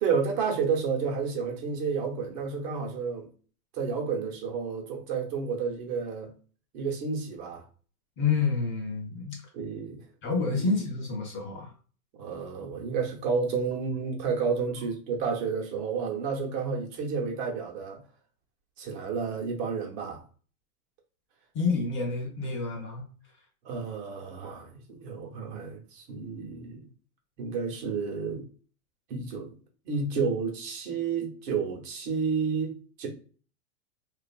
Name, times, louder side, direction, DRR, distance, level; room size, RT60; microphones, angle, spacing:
voice 1, 0.0-3.3 3.7-6.3 6.7-7.6 9.5-10.0 10.5-10.7 12.1-18.0 18.8-20.2 23.6-26.9 27.4-28.5 29.1-29.5 29.8-33.1, right 5 dB, 45° right, 1.0 m, -31 dB
voice 2, 8.2-9.4 10.2-11.7 21.5-23.1, left 4 dB, 25° left, 0.6 m, -28 dB
2.7 x 2.5 x 2.3 m
hypercardioid pair, 125°, 45 cm